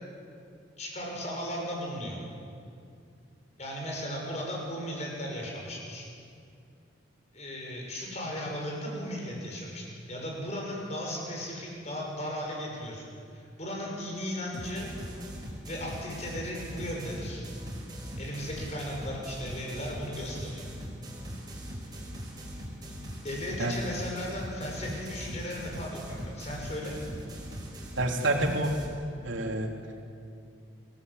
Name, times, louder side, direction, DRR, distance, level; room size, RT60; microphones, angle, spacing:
voice 1, 0.8-2.2 3.6-6.1 7.3-13.0 13.3-14.9 15.7-17.5 18.2-20.7 23.2-27.0, equal, 35° left, -1 dB, 6.5 m, -36 dB
sound 1, 14.5-28.9, equal, 20° right, 5.2 m, -41 dB
voice 2, 28.0-28.8 29.2-29.7, right 2 dB, 85° right, 1 dB, 3.4 m, -28 dB
26.5 x 17.0 x 8.3 m, 2.4 s
head